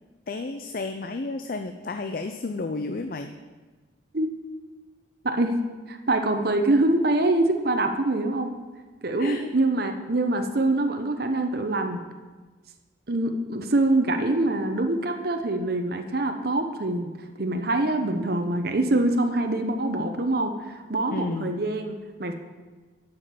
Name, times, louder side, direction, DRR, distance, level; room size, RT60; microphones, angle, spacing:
voice 1, 0.3-3.3 9.2-9.5 21.1-21.5, left 3 dB, 50° left, 6 dB, 0.5 m, -32 dB
voice 2, 5.2-5.6 5.9-8.5 9.0-12.0 13.1-17.1 17.4-22.3, right 2 dB, 55° right, 5 dB, 0.8 m, -24 dB
11.0 x 5.2 x 7.4 m, 1.3 s
head